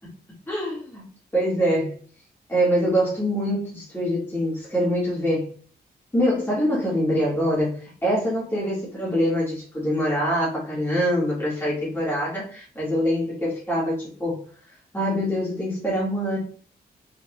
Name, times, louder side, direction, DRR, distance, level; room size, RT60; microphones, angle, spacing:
voice 1, 0.5-2.0 2.5-5.5 6.1-14.4 14.9-16.4, equal, 15° left, -7 dB, 2.0 m, -24 dB
5.2 x 3.9 x 2.4 m, 0.44 s
cardioid pair, 90°, 17 cm